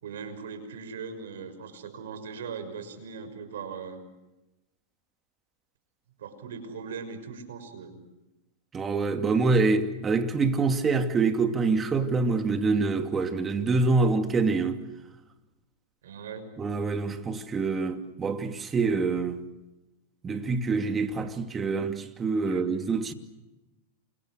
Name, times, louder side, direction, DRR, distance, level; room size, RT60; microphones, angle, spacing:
voice 1, 0.0-4.0 6.2-8.0 16.0-16.5 22.5-22.6, right 5 dB, 80° right, 6.1 m, -39 dB
voice 2, 8.7-14.8 16.6-19.4 20.2-23.1, right 4 dB, 20° right, 2.6 m, -26 dB
28.5 x 26.5 x 6.4 m
hypercardioid pair, 125°, 0 cm